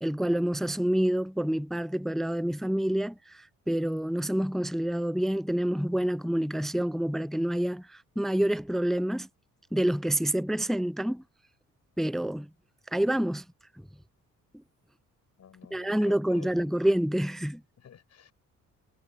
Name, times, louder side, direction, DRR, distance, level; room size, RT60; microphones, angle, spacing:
voice 1, 0.0-9.3 9.7-11.2 12.0-12.5 12.9-13.4 15.7-17.6, right 1 dB, ahead, 0.4 m, -27 dB
voice 2, 15.4-16.7 17.8-18.3, left 9 dB, 60° left, 7.2 m, -50 dB
cardioid pair, 90°, 30 cm